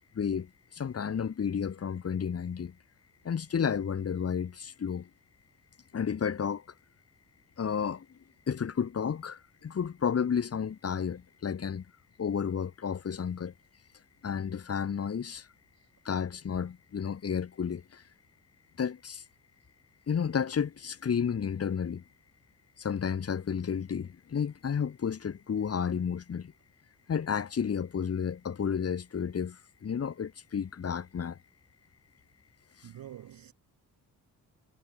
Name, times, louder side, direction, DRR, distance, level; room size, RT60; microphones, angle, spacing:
voice 1, 0.2-2.7 3.2-5.1 5.9-6.6 7.6-8.1 8.5-11.8 12.2-13.5 14.2-15.5 16.1-18.0 18.8-19.2 20.1-22.0 22.8-26.5 27.1-31.4, left 7 dB, 45° left, 2.1 m, -32 dB
voice 2, 32.8-33.5, right 11 dB, 80° right, 5.7 m, -46 dB
cardioid pair, 115°, 34 cm